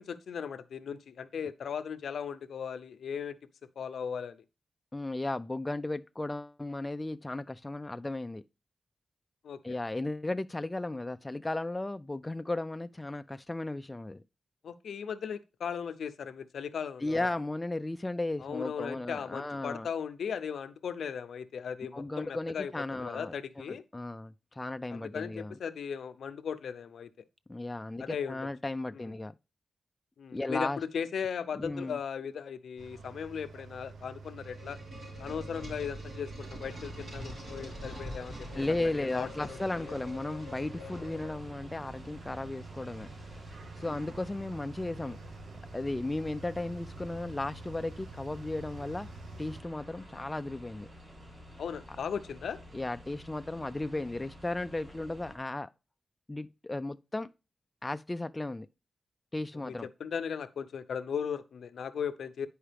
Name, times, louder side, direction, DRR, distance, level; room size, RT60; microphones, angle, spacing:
voice 1, 0.0-3.4 3.8-4.4 9.4-9.8 14.6-17.3 18.4-22.7 23.0-23.8 24.9-27.1 28.0-28.5 28.9-29.1 30.2-34.8 35.2-38.5 39.0-39.6 40.8-41.0 43.9-44.0 51.6-52.6 59.6-59.7 60.0-62.5, left 7 dB, 90° left, 0.6 m, -37 dB
voice 2, 4.9-8.4 9.6-14.2 17.0-19.9 21.9-23.3 23.7-25.5 27.5-29.4 30.3-30.8 31.5-32.0 38.5-43.1 43.8-45.2 45.7-49.1 49.4-50.9 52.7-55.7 56.3-57.3 57.8-58.7 59.3-59.9, left 2 dB, 15° left, 0.3 m, -35 dB
sound 1, 32.8-49.6, right 3 dB, 85° right, 0.7 m, -48 dB
sound 2, 34.0-41.7, left 1 dB, 65° right, 4.2 m, -45 dB
sound 3, 36.6-55.4, equal, 35° right, 2.6 m, -50 dB
10.0 x 4.7 x 3.3 m
wide cardioid pair, 130°, 0 cm